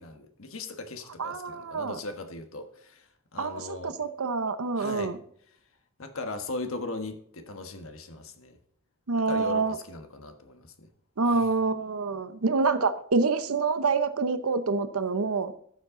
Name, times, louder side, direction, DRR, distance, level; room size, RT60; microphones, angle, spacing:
voice 1, 0.0-4.0 4.8-5.1 6.0-8.6 9.3-10.9 11.3-11.5, left 2 dB, 70° left, 6 dB, 1.4 m, -38 dB
voice 2, 1.2-2.0 3.4-5.2 9.1-9.8 11.2-15.5, right 4 dB, 90° right, 11 dB, 0.8 m, -27 dB
12.5 x 7.4 x 3.8 m, 0.65 s
head